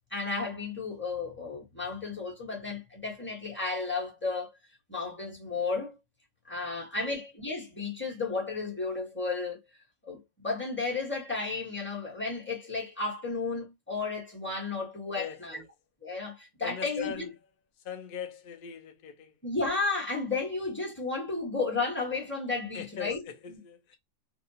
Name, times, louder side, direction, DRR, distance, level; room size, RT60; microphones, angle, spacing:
voice 1, 0.1-4.5 4.9-6.0 6.5-9.6 10.0-15.6 16.0-17.3 19.4-23.2, left 3 dB, 10° left, 0.9 m, -33 dB
voice 2, 6.7-7.2 15.1-15.7 16.6-17.3 17.8-19.3 22.7-24.0, left 8 dB, 55° left, 0.6 m, -41 dB
2.7 x 2.3 x 2.7 m
omnidirectional pair, 1.7 m